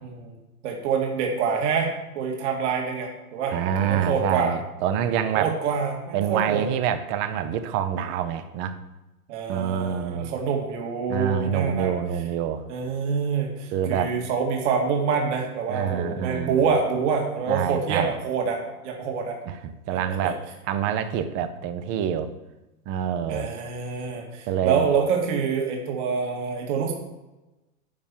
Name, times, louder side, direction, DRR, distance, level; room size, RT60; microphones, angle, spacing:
voice 1, 0.0-0.3 0.6-4.6 5.3-6.6 9.3-11.9 12.7-18.6 18.8-19.4 19.9-20.3 23.3-26.9, right 5 dB, 50° right, 1 dB, 2.2 m, -26 dB
voice 2, 3.5-5.5 6.1-8.8 9.5-10.4 11.1-12.6 13.7-14.1 15.7-16.7 17.5-18.1 19.5-20.4 20.7-22.3 22.9-23.5 24.5-24.9, right 9 dB, 25° right, 12 dB, 0.6 m, -26 dB
9.8 x 5.8 x 7.2 m, 1.0 s
hypercardioid pair, 145°, 45 cm